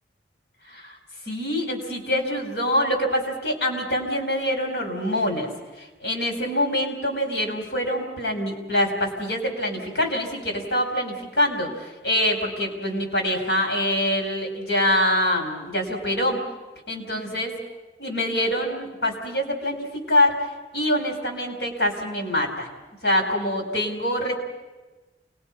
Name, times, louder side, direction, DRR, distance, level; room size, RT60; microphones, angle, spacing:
voice 1, 1.3-5.5 5.8-16.4 16.9-17.6 18.0-20.4 20.7-22.7 23.0-24.3, left 1 dB, 70° left, 2 dB, 4.9 m, -25 dB
29.0 x 21.0 x 5.7 m, 1.2 s
head